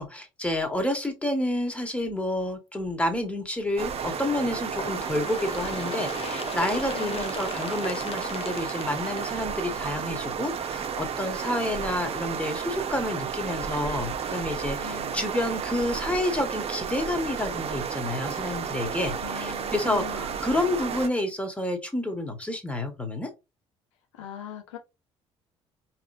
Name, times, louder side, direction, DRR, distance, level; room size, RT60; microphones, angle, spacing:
voice 1, 0.0-23.3, left 1 dB, 10° left, 1.6 m, -29 dB
sound 1, 3.8-21.1, right 7 dB, 40° right, 0.8 m, -32 dB
Bird, 4.7-10.1 11.0-11.1 11.5-11.6 12.5-12.6 13.5-13.6 14.5-14.6, left 7 dB, 40° left, 0.6 m, -38 dB
voice 2, 6.9-7.3 14.8-15.3 19.2-20.4 24.1-24.8, left 10 dB, 80° left, 1.1 m, -40 dB
4.7 x 3.1 x 2.6 m
hypercardioid pair, 55°, 15 cm